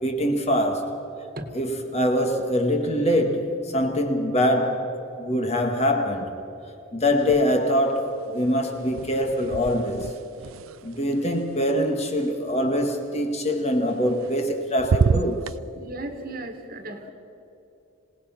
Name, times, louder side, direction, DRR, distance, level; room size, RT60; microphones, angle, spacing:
voice 1, 0.0-0.9 1.5-4.9 5.2-6.3 6.9-10.1 10.8-15.4, equal, 30° left, 1.9 m, -24 dB
sound 1, 7.2-7.9 8.2-12.3 13.9-14.5 14.8-15.6, right 5 dB, 85° right, 0.4 m, -29 dB
voice 2, 15.8-17.1, right 2 dB, 45° right, 1.8 m, -35 dB
27.0 x 18.5 x 5.9 m
head